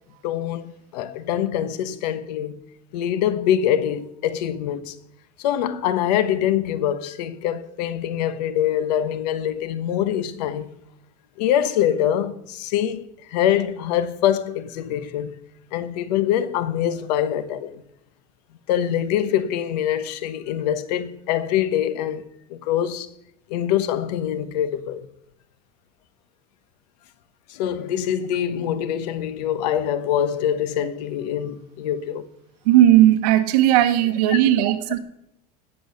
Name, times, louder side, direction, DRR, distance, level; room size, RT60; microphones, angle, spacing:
voice 1, 0.2-2.6 2.9-4.9 5.4-10.7 11.4-15.4 15.7-17.8 18.7-23.1 23.5-25.1 27.5-32.3 34.3-34.4, left 10 dB, 80° left, 1.1 m, -24 dB
voice 2, 32.7-35.0, right 12 dB, 75° right, 1.4 m, -16 dB
16.5 x 6.4 x 6.5 m
cardioid pair, 170°, 21 cm